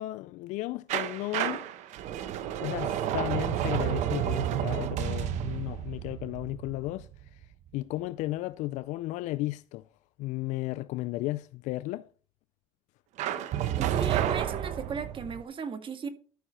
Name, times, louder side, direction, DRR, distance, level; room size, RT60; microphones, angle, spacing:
voice 1, 0.0-1.7 2.6-7.4 7.7-9.9 10.2-12.1, left 17 dB, 80° left, 0.4 m, -34 dB
sound 1, 0.9-7.7 13.2-15.4, right 11 dB, 75° right, 0.9 m, -31 dB
voice 2, 13.8-16.1, right 5 dB, 45° right, 1.9 m, -36 dB
12.5 x 6.5 x 4.2 m
supercardioid pair, 70°, 12 cm